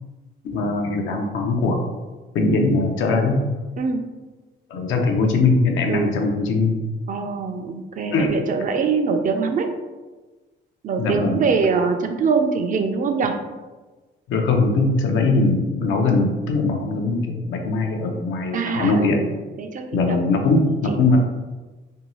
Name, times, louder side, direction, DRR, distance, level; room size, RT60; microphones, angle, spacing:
voice 1, 0.4-1.8 2.3-3.4 4.7-6.8 8.1-8.4 11.0-11.5 14.3-19.2 19.9-21.2, left 3 dB, 80° left, 2 dB, 0.5 m, -21 dB
voice 2, 7.1-9.7 10.8-13.3 18.5-20.2, right 5 dB, 40° right, 5 dB, 0.4 m, -23 dB
2.6 x 2.2 x 3.0 m, 1.2 s
cardioid pair, 90°, 20 cm